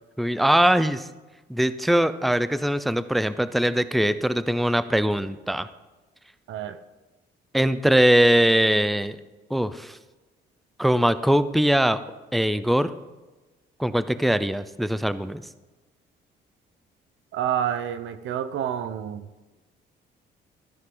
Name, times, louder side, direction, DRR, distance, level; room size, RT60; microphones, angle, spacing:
voice 1, 0.2-1.1 1.5-5.7 7.5-9.2 9.5-10.0 10.8-12.0 12.3-12.9 13.8-15.4, right 1 dB, ahead, 14 dB, 0.6 m, -21 dB
voice 2, 6.5-6.8 17.3-19.3, right 10 dB, 80° right, 11 dB, 0.9 m, -28 dB
14.0 x 13.5 x 3.9 m, 1.2 s
cardioid pair, 90°, 20 cm